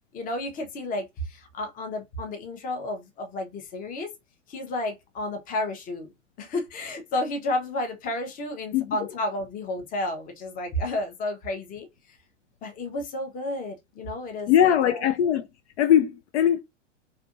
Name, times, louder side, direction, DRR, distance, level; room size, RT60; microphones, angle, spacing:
voice 1, 0.1-4.1 4.5-6.1 6.4-11.9 12.6-15.0, left 1 dB, 25° left, 0.7 m, -31 dB
voice 2, 14.5-15.5 15.8-16.6, left 10 dB, 65° left, 0.5 m, -20 dB
2.7 x 2.5 x 2.4 m
hypercardioid pair, 105°, 37 cm